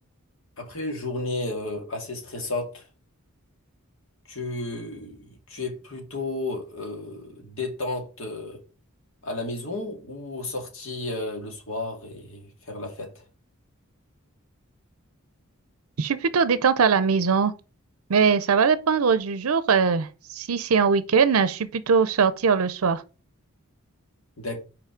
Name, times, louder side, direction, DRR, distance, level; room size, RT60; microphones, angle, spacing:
voice 1, 0.6-2.8 4.3-8.6 9.2-13.2 24.4-24.6, left 2 dB, 65° left, 2.2 m, -33 dB
voice 2, 16.0-17.5 18.1-23.0, right 5 dB, 85° right, 0.6 m, -21 dB
5.8 x 5.0 x 5.0 m
head